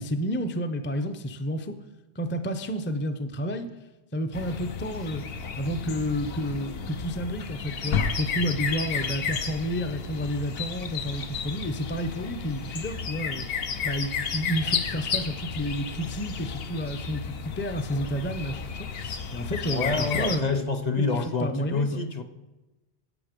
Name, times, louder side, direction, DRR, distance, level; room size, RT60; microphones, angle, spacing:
voice 1, 0.0-1.7 2.2-3.7 4.1-5.2 5.6-13.5 13.8-20.7 21.4-22.0, equal, 15° left, 7 dB, 0.5 m, -30 dB
sound 1, 4.3-20.4, left 6 dB, 70° left, 1.0 m, -32 dB
voice 2, 19.7-22.2, left 3 dB, 45° left, 6 dB, 0.8 m, -27 dB
11.0 x 8.0 x 5.2 m, 1.1 s
omnidirectional pair, 1.1 m